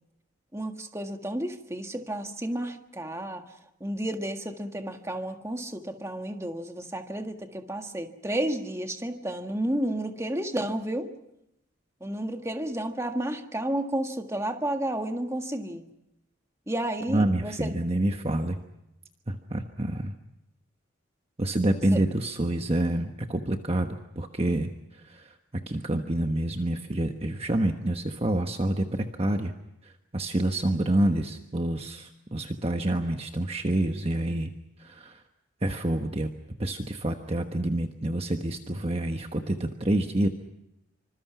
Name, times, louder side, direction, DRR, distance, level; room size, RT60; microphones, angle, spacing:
voice 1, 0.5-3.4 3.8-11.1 12.0-15.8 16.7-17.7 21.9-22.0, right 1 dB, 15° right, 5 dB, 1.7 m, -31 dB
voice 2, 17.1-18.6 19.3-20.2 21.4-24.7 25.0-25.3 25.7-29.5 29.8-34.5 34.8-35.2 35.6-36.3 36.6-40.3, right 1 dB, 30° right, 5 dB, 1.2 m, -27 dB
26.5 x 25.5 x 6.0 m, 0.87 s
head